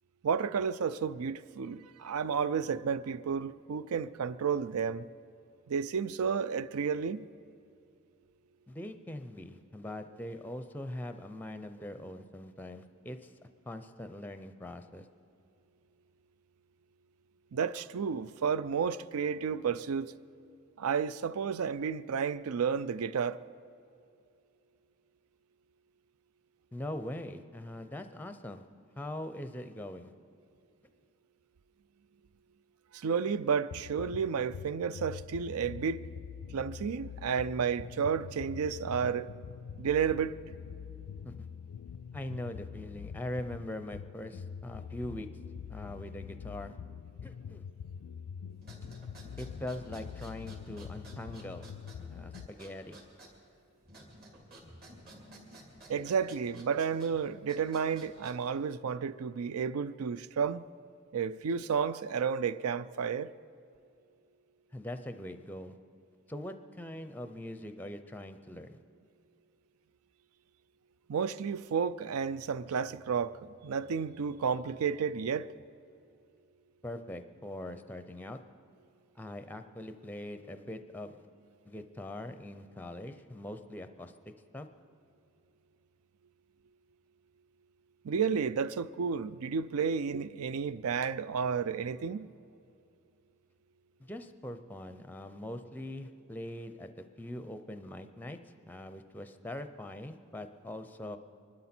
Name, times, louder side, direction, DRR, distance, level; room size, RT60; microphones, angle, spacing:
voice 1, 0.2-5.1 5.7-7.3 17.5-20.1 20.8-23.4 32.9-36.0 36.5-39.3 39.8-40.4 55.9-60.6 61.1-63.3 71.1-75.5 88.0-92.3, right 6 dB, 85° right, 0.4 m, -32 dB
voice 2, 8.7-13.3 13.7-15.1 26.7-28.6 29.0-30.1 41.2-41.3 42.1-45.3 45.7-46.8 47.2-47.7 49.4-51.7 52.1-53.0 64.7-65.7 66.3-68.8 76.8-78.4 79.1-81.3 81.6-84.1 84.5-84.7 94.0-101.2, left 1 dB, 10° left, 0.5 m, -42 dB
sound 1, 33.7-52.5, left 7 dB, 90° left, 0.3 m, -45 dB
sound 2, 48.5-58.6, right 1 dB, 45° right, 2.7 m, -54 dB
24.5 x 12.0 x 4.4 m
head